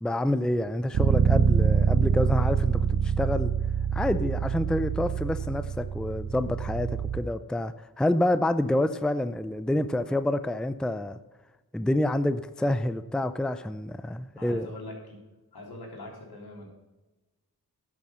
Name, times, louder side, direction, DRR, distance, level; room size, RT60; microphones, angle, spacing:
voice 1, 0.0-3.6 3.9-11.2 11.7-14.7, left 1 dB, ahead, 12 dB, 0.5 m, -28 dB
Bass guitar, 0.9-7.2, right 7 dB, 65° right, 0.8 m, -25 dB
voice 2, 14.4-15.2 15.5-16.7, left 1 dB, 75° left, -1 dB, 3.7 m, -42 dB
11.0 x 7.4 x 5.6 m, 1.1 s
wide cardioid pair, 65°, 37 cm